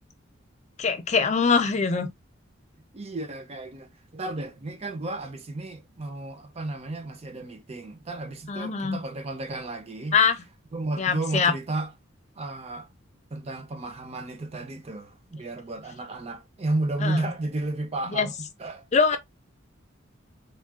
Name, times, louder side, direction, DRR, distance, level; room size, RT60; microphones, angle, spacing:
voice 1, 0.8-2.1 8.5-9.0 10.1-10.4 11.0-11.5 17.0-17.2 18.1-18.3 18.9-19.2, left 5 dB, 35° left, 0.4 m, -23 dB
voice 2, 2.9-10.2 10.7-11.9 12.4-12.9 13.3-18.8, right 2 dB, 30° right, 0.5 m, -33 dB
3.5 x 2.2 x 2.3 m
head